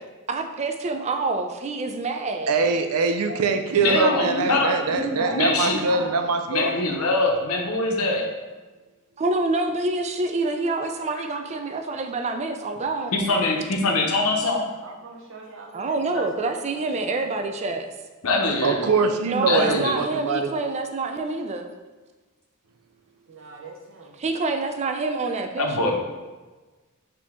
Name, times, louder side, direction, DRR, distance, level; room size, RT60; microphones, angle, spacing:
voice 1, 0.3-2.6 9.2-13.1 15.7-17.9 19.2-21.7 24.2-26.0, right 3 dB, 30° right, 6 dB, 0.4 m, -27 dB
voice 2, 2.5-6.7 18.6-20.5, right 4 dB, 90° right, 6 dB, 0.5 m, -23 dB
voice 3, 3.8-4.7 5.3-5.8 6.5-8.2 13.1-14.6 16.1-16.2 18.2-18.8 19.5-19.9 25.6-26.0, left 3 dB, 75° left, 1 dB, 0.8 m, -23 dB
voice 4, 4.9-6.9 14.8-17.7 23.3-24.1, right 3 dB, 60° right, -1 dB, 0.9 m, -37 dB
5.0 x 2.8 x 3.6 m, 1.2 s
head